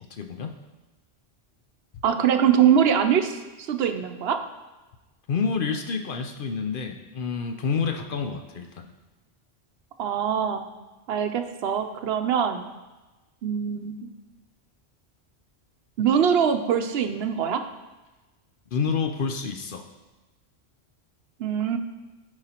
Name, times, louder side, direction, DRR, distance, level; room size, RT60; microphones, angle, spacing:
voice 1, 0.1-0.5 5.3-8.9 18.7-19.8, left 5 dB, 60° left, 5 dB, 0.7 m, -28 dB
voice 2, 2.0-4.4 10.0-10.6 11.1-12.7 13.4-14.1 16.0-17.6 21.4-21.8, right 8 dB, 70° right, 7 dB, 0.8 m, -23 dB
12.5 x 4.9 x 2.9 m, 1.1 s
omnidirectional pair, 1.1 m